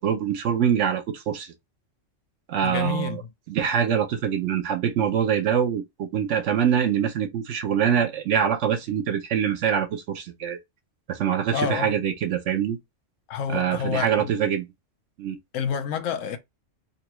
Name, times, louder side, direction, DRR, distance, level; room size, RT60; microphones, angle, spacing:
voice 1, 0.0-1.5 2.5-3.2 3.5-10.6 11.1-12.8 13.5-14.6 15.2-15.4, right 8 dB, 75° right, 0.9 m, -24 dB
voice 2, 2.6-3.3 11.5-11.9 13.3-14.3 15.5-16.4, left 7 dB, 90° left, 1.0 m, -28 dB
3.9 x 2.2 x 2.9 m
omnidirectional pair, 1.3 m